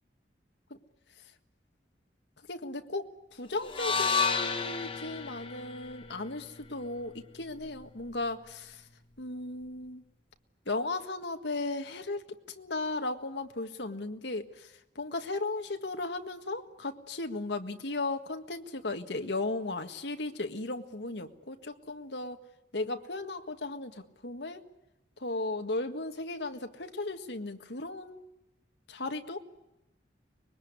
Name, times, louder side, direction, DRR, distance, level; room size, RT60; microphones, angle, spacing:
voice 1, 2.5-8.9 9.2-10.0 10.7-22.4 22.7-24.7 25.2-28.3 28.9-29.4, left 2 dB, 80° left, 6 dB, 1.8 m, -36 dB
sound 1, 3.7-7.9, left 5 dB, 30° left, 1.5 m, -33 dB
24.5 x 21.5 x 9.7 m, 0.95 s
head